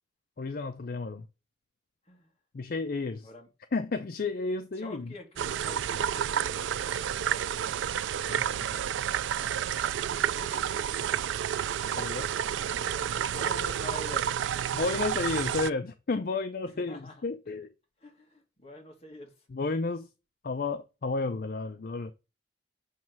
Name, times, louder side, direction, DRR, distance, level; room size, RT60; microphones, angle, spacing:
voice 1, 0.4-1.3 2.5-3.3 3.7-5.1 8.3-8.8 12.0-12.3 14.7-17.7 19.5-20.1 20.4-22.1, left 3 dB, 50° left, 0.5 m, -32 dB
voice 2, 4.8-7.0 10.2-11.0 13.2-14.4 16.7-17.2 18.0-19.5, left 1 dB, 35° left, 1.8 m, -46 dB
sound 1, 5.4-15.7, right 9 dB, 85° right, 0.3 m, -30 dB
7.3 x 3.2 x 5.9 m
head